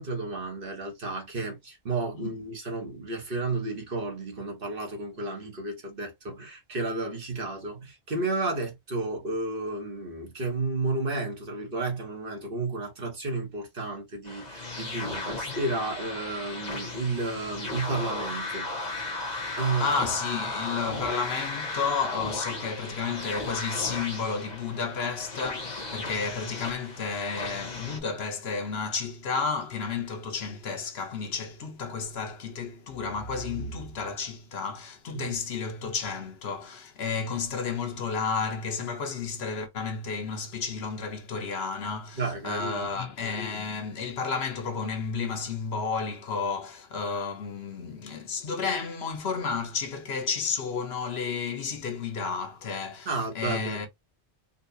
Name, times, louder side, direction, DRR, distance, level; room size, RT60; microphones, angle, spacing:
voice 1, 0.0-18.7 19.6-19.9 35.1-35.3 42.1-42.9 53.1-53.9, right 3 dB, 55° right, 1.3 m, -32 dB
sound 1, 14.2-28.0, left 2 dB, 40° left, 1.0 m, -35 dB
voice 2, 19.5-53.1 53.3-53.9, left 5 dB, 70° left, 1.0 m, -32 dB
3.9 x 2.3 x 2.6 m
omnidirectional pair, 1.1 m